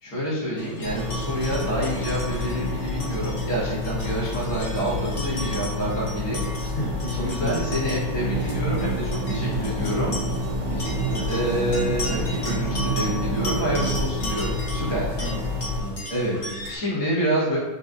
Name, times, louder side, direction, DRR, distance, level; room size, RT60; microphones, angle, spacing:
voice 1, 0.0-6.4 7.2-10.2 11.3-15.1 16.1-16.3 16.7-17.6, right 1 dB, 75° left, -8 dB, 2.6 m, -27 dB
sound 1, 0.6-16.8, equal, 40° left, 0.9 m, -36 dB
sound 2, 0.8-15.8, left 3 dB, 70° right, 1.6 m, -29 dB
voice 2, 6.6-7.6 10.7-11.3 15.2-15.5 15.8-16.0 16.4-16.6, left 1 dB, 60° left, -6 dB, 0.5 m, -33 dB
sound 3, 8.1-14.0, right 8 dB, 90° right, 1.5 m, -30 dB
5.5 x 2.6 x 3.7 m, 1.1 s
omnidirectional pair, 2.3 m